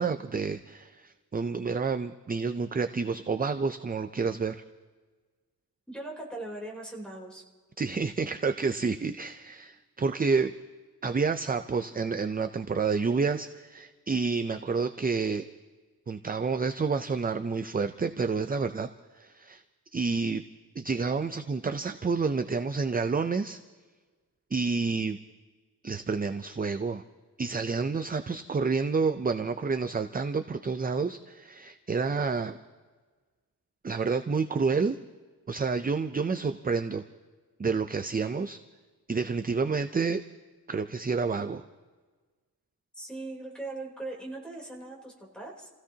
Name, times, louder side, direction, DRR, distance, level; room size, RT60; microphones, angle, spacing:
voice 1, 0.0-4.6 7.8-10.5 11.0-15.5 16.1-18.9 19.2-19.6 19.9-20.4 20.8-23.6 24.5-25.2 25.8-27.0 27.4-32.6 33.8-35.0 35.5-37.0 37.6-38.6 39.1-40.2 40.7-41.6, right 4 dB, 25° right, 8 dB, 0.5 m, -29 dB
voice 2, 5.9-7.4 42.9-45.7, right 2 dB, ahead, -2 dB, 3.4 m, -40 dB
29.5 x 16.0 x 2.8 m, 1.4 s
wide cardioid pair, 160°, 38 cm